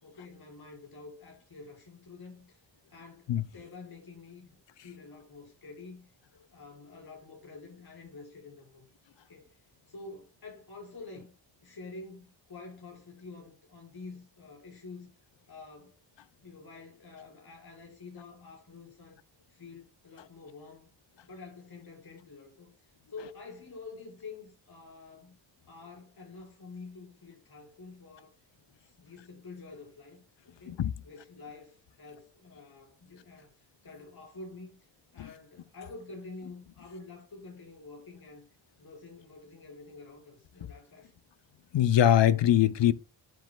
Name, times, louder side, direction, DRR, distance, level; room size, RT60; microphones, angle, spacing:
voice 1, 0.0-2.6 2.9-6.1 6.5-8.8 9.3-11.3 11.6-15.1 15.5-16.0 16.4-19.2 19.5-20.9 21.2-25.3 25.6-28.4 28.8-34.9 35.1-38.4 38.8-41.1, left 3 dB, 55° left, 5.3 m, -48 dB
voice 2, 41.7-42.9, left 11 dB, 75° left, 0.7 m, -22 dB
9.4 x 7.8 x 2.3 m
wide cardioid pair, 95°, 44 cm